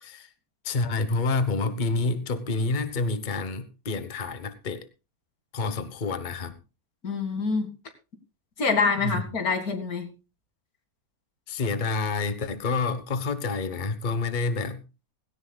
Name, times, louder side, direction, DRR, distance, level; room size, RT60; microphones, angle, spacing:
voice 1, 0.6-4.9 5.5-6.6 9.0-9.2 11.5-14.8, left 3 dB, 35° left, 12 dB, 1.2 m, -28 dB
voice 2, 7.0-7.7 8.6-10.1, left 4 dB, 85° left, 7 dB, 2.7 m, -26 dB
17.0 x 17.0 x 2.3 m, 0.29 s
omnidirectional pair, 1.5 m